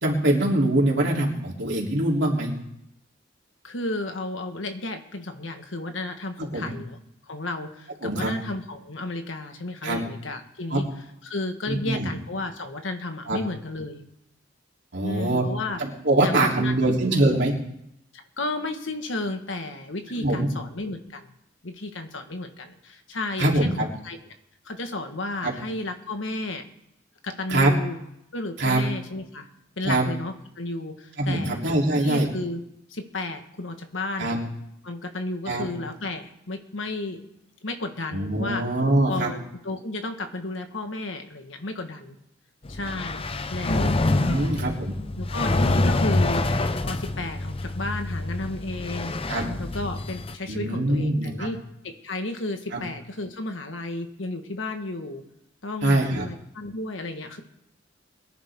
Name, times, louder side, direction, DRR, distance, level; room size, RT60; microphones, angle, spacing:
voice 1, 0.0-2.5 6.5-6.7 8.0-8.3 9.8-10.0 10.7-10.8 11.7-12.1 13.3-13.4 14.9-15.5 15.8-17.5 20.2-20.5 23.4-23.8 25.4-25.5 27.5-27.7 28.6-28.8 29.8-30.0 31.2-32.3 34.2-34.4 35.5-35.6 38.1-39.3 44.1-45.0 49.3-49.4 50.5-51.5 52.7-52.8 55.8-56.2, right 1 dB, 65° right, -3 dB, 3.4 m, -23 dB
voice 2, 3.6-7.0 7.3-10.9 11.2-14.0 15.0-15.8 16.2-17.3 18.4-21.3 21.6-24.2 24.6-26.6 27.2-28.0 28.3-29.5 29.8-31.6 31.9-32.6 32.9-34.3 34.8-37.2 37.6-38.6 39.1-39.4 39.6-42.2 42.7-43.2 43.5-43.9 44.2-44.6 45.2-46.5 46.8-49.1 49.6-51.6 51.8-55.2 55.6-57.4, left 2 dB, 75° left, 6 dB, 1.6 m, -33 dB
sound 1, 42.6-50.3, left 2 dB, 30° left, 0.6 m, -26 dB
22.5 x 11.0 x 3.7 m, 0.81 s
head